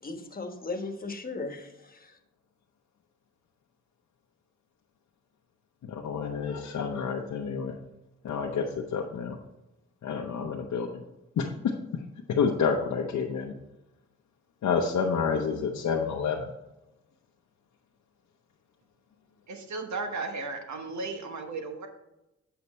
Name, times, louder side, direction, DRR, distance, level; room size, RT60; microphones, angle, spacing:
voice 1, 0.0-2.2, left 3 dB, 30° left, 6 dB, 1.2 m, -37 dB
voice 2, 5.8-7.8 8.2-9.4 10.0-11.0 11.4-13.5 14.6-16.5, left 6 dB, 85° left, 1 dB, 0.8 m, -29 dB
voice 3, 19.5-21.9, right 3 dB, 75° right, 5 dB, 1.2 m, -35 dB
8.6 x 5.8 x 4.2 m, 0.93 s
cardioid pair, 75°, 29 cm